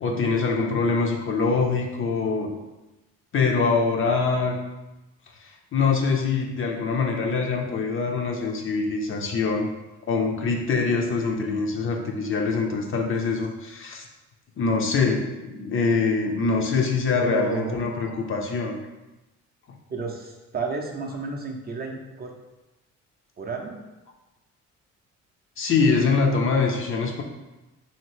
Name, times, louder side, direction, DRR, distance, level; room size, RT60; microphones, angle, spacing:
voice 1, 0.0-2.5 3.3-4.6 5.4-9.7 10.1-14.1 14.6-18.7 25.6-27.2, left 4 dB, 45° left, 2 dB, 0.5 m, -24 dB
voice 2, 17.2-17.8 19.9-22.3 23.4-23.8, right 3 dB, 30° right, 1 dB, 0.5 m, -31 dB
2.8 x 2.7 x 3.0 m, 1.0 s
cardioid pair, 90°, 30 cm